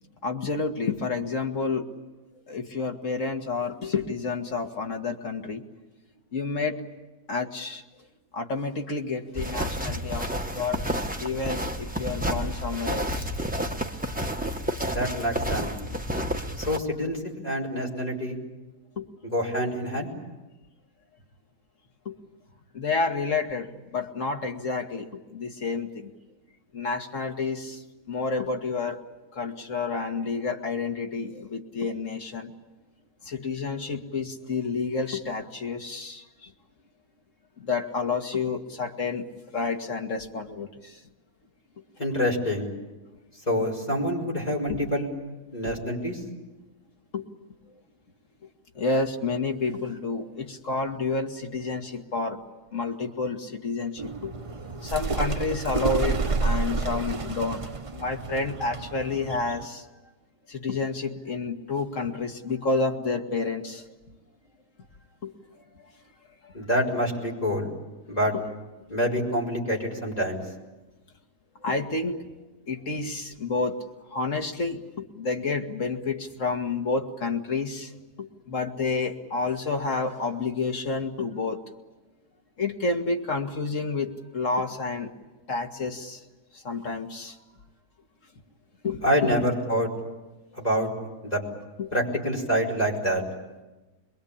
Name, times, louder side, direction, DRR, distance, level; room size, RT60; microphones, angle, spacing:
voice 1, 0.2-1.8 2.5-5.6 6.3-6.8 7.3-7.8 8.3-10.3 10.5-10.8 11.2-13.3 19.0-19.1 22.1-22.2 22.7-26.1 26.7-29.0 29.3-32.5 33.2-36.5 37.6-39.3 39.5-41.0 44.7-44.8 47.1-47.3 48.8-52.4 52.7-54.3 54.8-57.6 57.9-59.9 60.5-63.8 65.2-65.3 65.8-65.9 66.4-66.5 68.3-68.4 71.6-72.2 72.7-73.8 74.0-77.9 78.2-81.6 82.6-85.1 85.5-86.2 86.5-87.4 88.8-89.4 90.6-90.7 91.8-91.9, left 4 dB, 50° left, 3 dB, 2.2 m, -29 dB
sound 1, 9.4-16.8, equal, 5° right, 1.0 m, -30 dB
voice 2, 14.9-15.7 16.6-18.4 19.3-20.1 42.0-42.7 43.5-45.1 45.5-46.2 66.5-67.7 68.1-68.3 68.9-70.4 89.0-89.9 90.6-90.9 91.2-91.4 91.9-93.2, equal, 25° left, -2 dB, 5.0 m, -26 dB
sound 2, 54.0-59.7, right 3 dB, 30° right, 0.6 m, -30 dB
27.0 x 22.0 x 8.7 m, 1.1 s
omnidirectional pair, 1.7 m